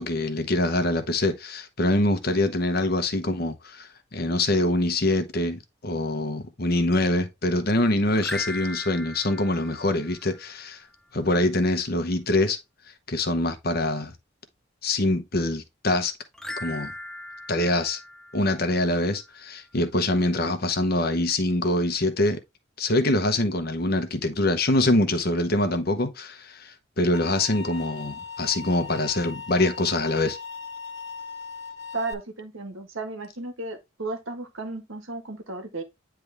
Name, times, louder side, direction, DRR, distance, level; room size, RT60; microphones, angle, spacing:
voice 1, 0.0-10.8 11.1-12.6 13.1-14.1 14.8-16.1 16.6-16.9 17.5-18.0 18.3-22.4 22.8-30.4, left 2 dB, 50° left, 1.0 m, -24 dB
sound 1, 8.1-10.6 16.3-19.0, left 2 dB, 5° left, 0.6 m, -38 dB
sound 2, 27.1-32.1, left 5 dB, 80° left, 1.1 m, -38 dB
voice 2, 31.9-35.8, right 3 dB, 75° right, 1.5 m, -34 dB
9.5 x 3.4 x 3.4 m
head